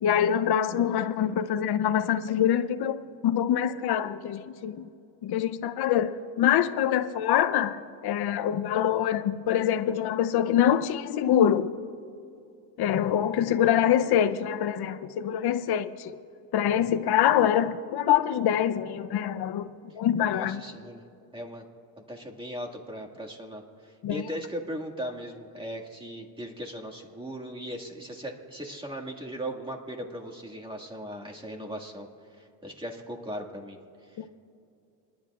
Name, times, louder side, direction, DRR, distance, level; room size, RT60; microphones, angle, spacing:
voice 1, 0.0-4.9 5.2-11.7 12.8-16.2 16.5-20.6 24.0-24.2 34.2-34.3, left 10 dB, 50° left, 0.7 m, -25 dB
voice 2, 20.2-21.0 21.3-21.6 22.1-32.1 32.4-33.8 34.1-34.2, equal, 10° right, 2.0 m, -38 dB
28.5 x 10.5 x 2.4 m
supercardioid pair, 80°, 49 cm